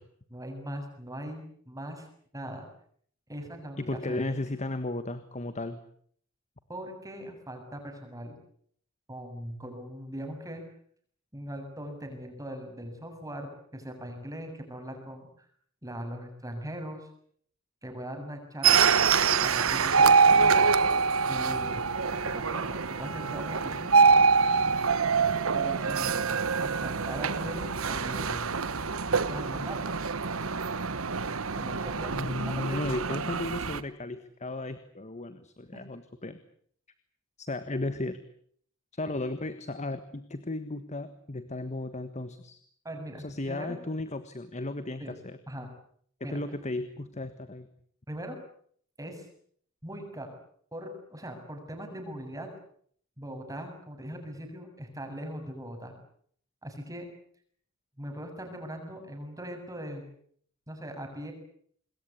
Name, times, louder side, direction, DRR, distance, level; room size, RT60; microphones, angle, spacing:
voice 1, 0.3-2.1 2.3-2.7 3.3-4.3 6.7-8.4 9.1-10.6 11.3-15.3 15.8-17.1 17.8-18.9 19.4-20.6 21.3-21.9 22.1-24.1 25.5-28.5 29.3-29.9 31.6-32.1 32.6-33.2 35.7-35.8 42.8-43.8 45.0-45.1 45.5-45.7 46.2-46.4 48.1-48.4 49.0-49.3 49.8-50.3 50.7-52.5 53.2-55.9 56.6-57.1 58.0-60.0 60.7-61.3, equal, 15° right, 4 dB, 7.1 m, -40 dB
voice 2, 3.8-5.8 32.1-36.4 37.4-38.2 38.9-42.6 43.2-45.4 46.2-47.7, left 2 dB, 35° left, 11 dB, 1.5 m, -35 dB
sound 1, 18.6-33.8, right 5 dB, 75° right, 1.2 m, -25 dB
26.5 x 21.5 x 8.5 m, 0.62 s
head